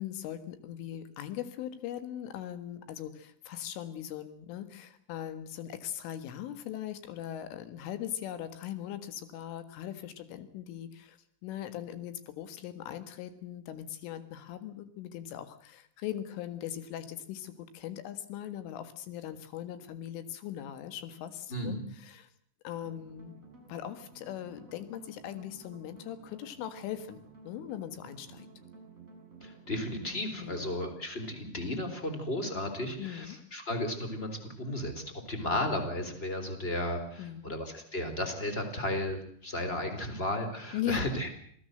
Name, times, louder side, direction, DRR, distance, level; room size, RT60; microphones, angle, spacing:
voice 1, 0.0-22.3 22.6-23.4 23.7-27.2 27.4-28.5 30.4-30.8 33.0-33.4 37.2-37.5 40.7-41.1, left 11 dB, 85° left, 11 dB, 4.2 m, -40 dB
voice 2, 21.5-21.8 29.4-41.3, left 1 dB, 15° left, 7 dB, 3.2 m, -34 dB
sound 1, 22.8-30.3, right 3 dB, 15° right, 7.9 m, -53 dB
27.0 x 17.0 x 7.8 m, 0.64 s
omnidirectional pair, 5.6 m